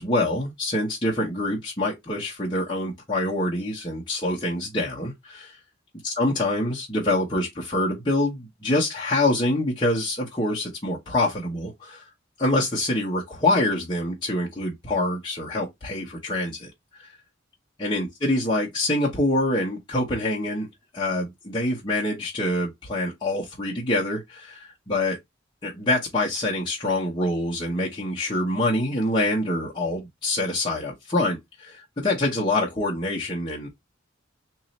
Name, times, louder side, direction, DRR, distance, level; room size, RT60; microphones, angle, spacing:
voice 1, 0.0-5.6 6.0-12.0 12.4-16.7 17.0-17.1 17.8-20.7 20.9-25.2 25.6-33.7, left 1 dB, 25° left, 1.0 m, -25 dB
3.1 x 2.7 x 4.0 m
head